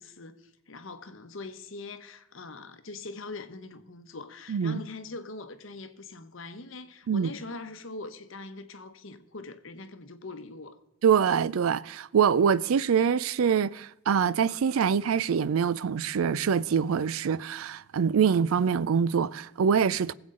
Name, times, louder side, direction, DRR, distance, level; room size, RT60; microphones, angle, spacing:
voice 1, 0.0-10.8, left 3 dB, 65° left, 1.0 m, -42 dB
voice 2, 4.5-4.8 7.1-7.3 11.0-20.1, right 7 dB, 85° right, 0.4 m, -24 dB
20.5 x 8.0 x 3.8 m
head